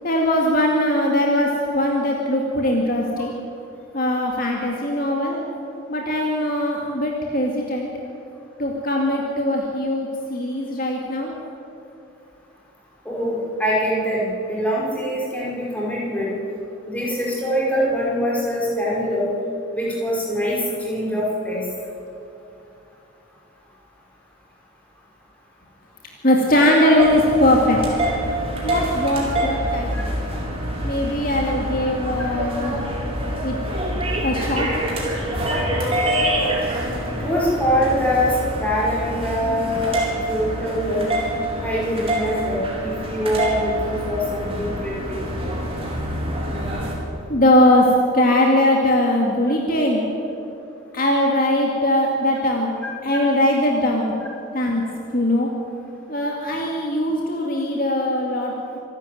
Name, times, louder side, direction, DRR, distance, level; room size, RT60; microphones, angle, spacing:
voice 1, 0.0-3.3 3.9-5.4 5.9-7.9 8.6-11.3 26.2-27.8 28.6-30.1 30.8-32.8 33.4-33.6 34.2-34.7 47.3-47.9 48.1-50.0 50.9-52.7 53.0-54.1 54.5-54.8 55.1-55.5 56.1-58.8, left 1 dB, 40° left, -1 dB, 2.3 m, -20 dB
voice 2, 13.1-16.3 16.9-19.3 19.7-21.6 29.9-30.0 37.2-41.1 41.6-45.2, equal, 5° left, -5 dB, 5.3 m, -23 dB
sound 1, 27.0-46.9, right 1 dB, 25° right, 4.2 m, -26 dB
26.0 x 12.0 x 9.3 m, 2.6 s
head